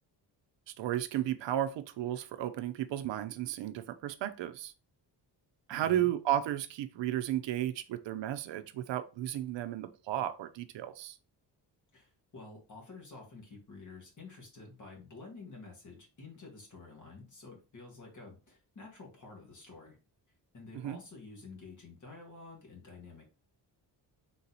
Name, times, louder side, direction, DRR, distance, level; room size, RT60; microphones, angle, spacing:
voice 1, 0.7-4.7 5.7-11.2 20.7-21.0, right 12 dB, 80° right, 0.6 m, -34 dB
voice 2, 5.7-6.1 11.9-20.0 20.5-23.3, left 3 dB, 45° left, 1.6 m, -50 dB
3.8 x 2.9 x 3.9 m
wide cardioid pair, 180°, 43 cm